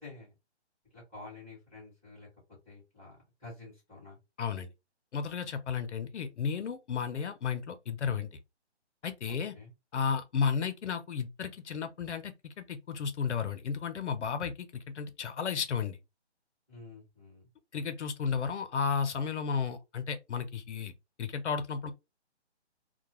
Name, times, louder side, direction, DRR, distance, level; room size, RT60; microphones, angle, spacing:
voice 1, 0.0-0.3 0.9-2.3 2.6-4.2 9.3-9.7 16.7-17.5, left 3 dB, 5° right, 0.9 m, -49 dB
voice 2, 4.4-4.7 5.1-8.3 9.0-9.5 9.9-16.0 17.7-20.9 21.2-21.9, left 6 dB, 80° left, 0.7 m, -33 dB
2.3 x 2.2 x 2.9 m
hypercardioid pair, 170°, 35 cm